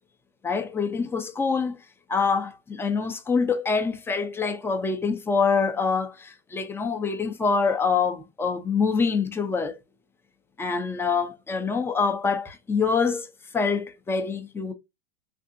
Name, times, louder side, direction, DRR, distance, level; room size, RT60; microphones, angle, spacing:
voice 1, 0.4-1.8 2.1-9.8 10.6-14.7, left 5 dB, 10° left, 0.4 m, -25 dB
3.5 x 2.6 x 2.5 m
hypercardioid pair, 120°, 31 cm